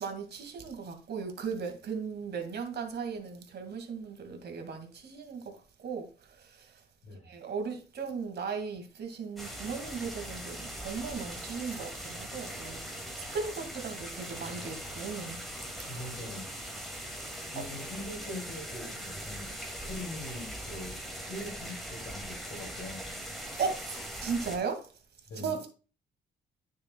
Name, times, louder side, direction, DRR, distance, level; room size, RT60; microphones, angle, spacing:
voice 1, 0.0-6.8 7.2-15.4 16.9-17.0 17.3-17.6 23.4-24.9 25.4-25.7, right 5 dB, 55° right, 2.0 m, -37 dB
voice 2, 7.0-7.3 15.9-16.5 17.5-23.1 25.3-25.7, left 1 dB, 65° left, 2.6 m, -43 dB
sound 1, 9.4-24.6, equal, ahead, 2.2 m, -41 dB
9.5 x 6.6 x 2.3 m
cardioid pair, 90°, 20 cm